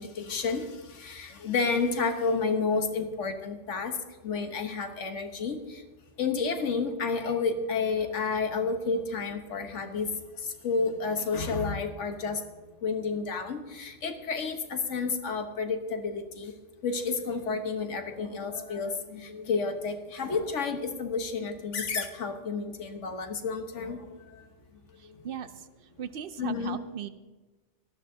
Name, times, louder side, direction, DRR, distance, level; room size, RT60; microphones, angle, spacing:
voice 1, 0.0-4.0 4.2-5.8 6.2-10.1 10.4-12.4 12.8-16.5 16.8-24.4 25.1-25.2 26.4-26.8, left 4 dB, 80° left, 6 dB, 1.5 m, -30 dB
voice 2, 25.0-25.7 26.0-27.1, right 8 dB, 60° right, 13 dB, 0.7 m, -38 dB
18.0 x 13.5 x 2.7 m, 1.2 s
omnidirectional pair, 1.2 m